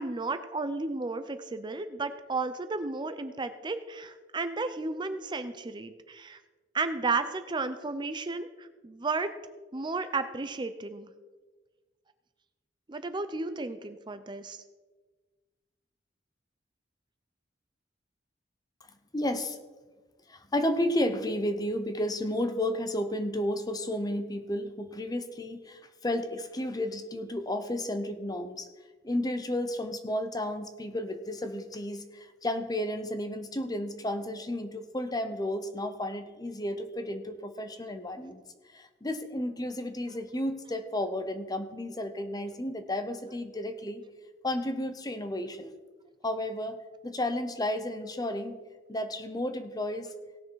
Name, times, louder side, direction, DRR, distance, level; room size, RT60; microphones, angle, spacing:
voice 1, 0.0-6.4 6.7-9.3 9.7-11.1 12.9-14.6, right 3 dB, 25° right, 10 dB, 0.5 m, -33 dB
voice 2, 19.1-19.6 20.3-28.7 29.0-38.4 38.7-44.0 44.4-45.7 46.2-46.8 47.0-48.6 48.9-50.1, left 1 dB, 20° left, 9 dB, 0.8 m, -32 dB
17.5 x 6.5 x 4.7 m, 1.3 s
head